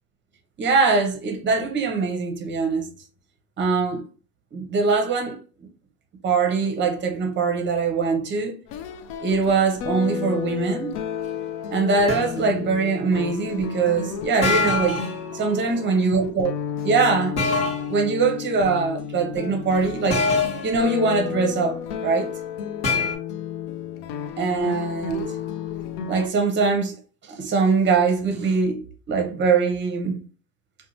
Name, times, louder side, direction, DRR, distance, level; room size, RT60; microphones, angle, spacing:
voice 1, 0.6-2.9 3.6-4.0 4.5-5.4 6.2-8.5 9.2-11.0 11.7-15.0 15.3-16.5 16.8-17.4 17.9-20.2 20.6-22.3 24.4-25.4 26.1-27.0 27.3-30.2, right 4 dB, 25° right, 0.7 m, -22 dB
sound 1, 8.7-26.3, left 7 dB, 55° left, 0.5 m, -32 dB
sound 2, 12.1-12.4 14.4-15.2 17.4-17.9 20.1-20.7 22.8-23.1, left 3 dB, 35° left, 1.1 m, -23 dB
2.6 x 2.2 x 2.9 m
hypercardioid pair, 95°, 45 cm